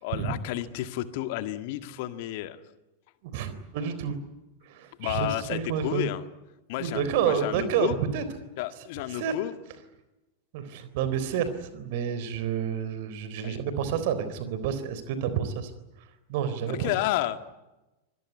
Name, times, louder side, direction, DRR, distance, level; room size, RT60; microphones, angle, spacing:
voice 1, 0.0-2.6 5.0-6.2 6.7-8.0 8.6-9.5 13.4-13.6 16.7-17.4, left 15 dB, 50° left, 10 dB, 1.9 m, -31 dB
voice 2, 3.2-4.2 4.6-6.1 6.8-8.2 9.1-9.3 10.5-15.7 16.3-16.9, right 8 dB, 50° right, 12 dB, 3.8 m, -29 dB
25.5 x 20.5 x 9.6 m, 1.0 s
figure-of-eight pair, 90°, 0 cm